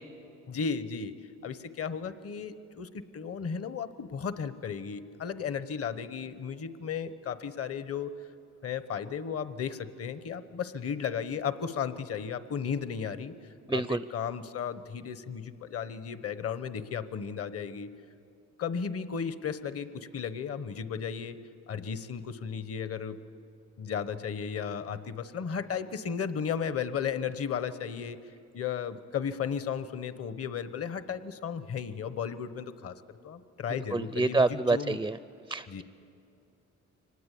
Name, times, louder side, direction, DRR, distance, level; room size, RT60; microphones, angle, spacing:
voice 1, 0.5-1.1 1.4-8.1 8.6-13.3 13.7-17.9 18.6-21.4 21.7-23.2 23.8-28.2 28.5-35.0 35.7-35.8, left 7 dB, 50° left, 13 dB, 1.1 m, -34 dB
voice 2, 13.7-14.0 33.9-35.2 35.5-35.8, right 3 dB, 10° right, 15 dB, 0.4 m, -27 dB
24.5 x 19.5 x 8.4 m, 2.6 s
cardioid pair, 90°, 30 cm